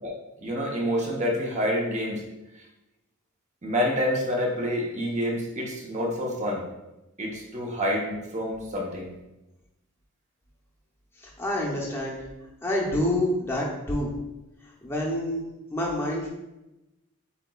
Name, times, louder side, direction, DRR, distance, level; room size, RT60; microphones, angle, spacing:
voice 1, 0.4-2.2 3.6-6.7 7.2-9.1, equal, 30° right, -2 dB, 0.8 m, -28 dB
voice 2, 11.4-12.2 12.6-14.1 14.8-15.4 15.7-16.3, left 1 dB, 10° left, -3 dB, 0.7 m, -27 dB
7.9 x 2.9 x 2.3 m, 0.96 s
head